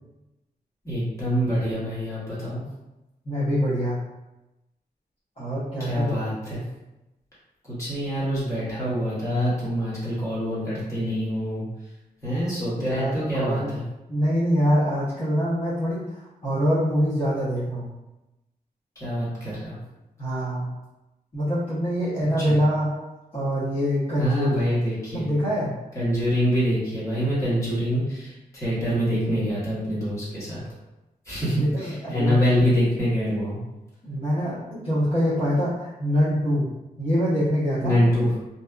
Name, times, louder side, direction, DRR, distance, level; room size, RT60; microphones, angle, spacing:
voice 1, 0.8-2.6 5.8-6.6 7.7-11.6 12.2-13.8 19.0-19.8 22.5-22.6 24.2-25.3 25.9-30.6 31.3-33.6 37.8-38.3, equal, 20° left, -10 dB, 1.0 m, -25 dB
voice 2, 3.3-4.0 5.4-6.2 12.8-13.7 14.1-16.0 16.4-17.9 20.2-20.7 21.3-22.9 23.3-24.6 25.1-25.7 31.5-32.4 34.0-36.7 37.0-38.0, equal, 35° left, -12 dB, 0.7 m, -24 dB
2.7 x 2.3 x 2.3 m, 1.0 s
wide cardioid pair, 180°, 16 cm